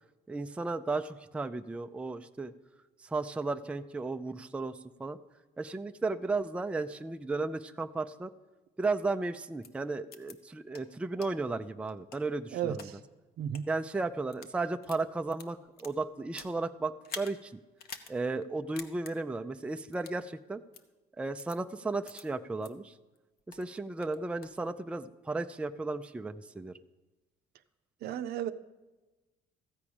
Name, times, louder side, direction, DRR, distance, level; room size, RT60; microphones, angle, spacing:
voice 1, 0.3-2.5 3.0-5.2 5.6-8.3 8.8-12.9 13.7-17.6 18.1-20.6 21.2-22.9 23.5-26.7, right 3 dB, 5° right, 8 dB, 0.4 m, -34 dB
sound 1, 9.6-9.7 10.1-10.3 10.7-10.8 11.2-11.3 11.9-12.9 13.4-13.6 14.2-14.5 14.8-16.6 17.0-17.3 17.8-18.1 18.4-18.5 18.8-19.1 19.9-20.2 20.7-20.8 21.4-21.6 22.1-22.2 22.6-22.7 23.1-23.7 24.0-24.6, left 6 dB, 65° left, 0.9 m, -46 dB
voice 2, 12.5-13.0 13.4-13.7 28.0-28.5, right 9 dB, 70° right, 11 dB, 0.6 m, -34 dB
14.5 x 4.8 x 8.6 m, 1.2 s
cardioid pair, 110°, 17 cm